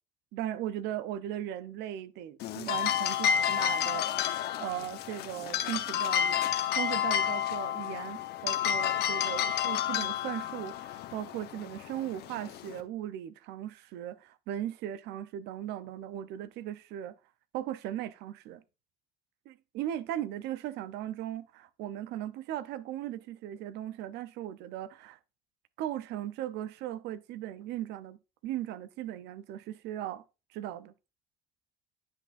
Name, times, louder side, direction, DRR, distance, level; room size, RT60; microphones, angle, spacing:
voice 1, 0.3-6.4 6.7-17.1 17.5-18.6 19.5-25.2 25.8-28.2 28.4-30.2 30.5-30.9, right 12 dB, 85° right, 0.6 m, -38 dB
sound 1, 2.4-12.8, left 9 dB, 75° left, 0.8 m, -30 dB
9.8 x 5.7 x 2.5 m
cardioid pair, 110°, 17 cm